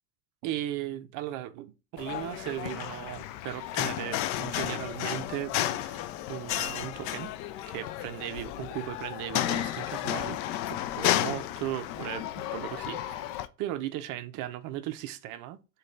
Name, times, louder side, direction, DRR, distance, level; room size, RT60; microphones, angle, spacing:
voice 1, 0.4-7.3 7.7-13.3 13.6-15.6, right 13 dB, 45° right, 0.5 m, -37 dB
sound 1, 2.0-13.5, left 13 dB, 45° left, 0.4 m, -32 dB
6.2 x 2.4 x 2.5 m
hypercardioid pair, 75°, 47 cm